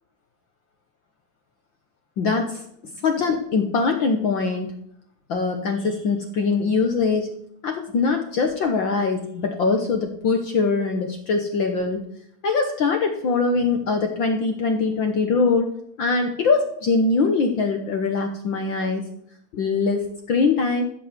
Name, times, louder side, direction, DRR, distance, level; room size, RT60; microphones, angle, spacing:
voice 1, 2.2-2.6 3.0-4.7 5.3-7.3 7.6-12.0 12.4-15.7 16.0-19.0 19.5-20.8, left 4 dB, 60° left, 4 dB, 1.3 m, -22 dB
14.0 x 5.5 x 8.0 m, 0.70 s
omnidirectional pair, 3.3 m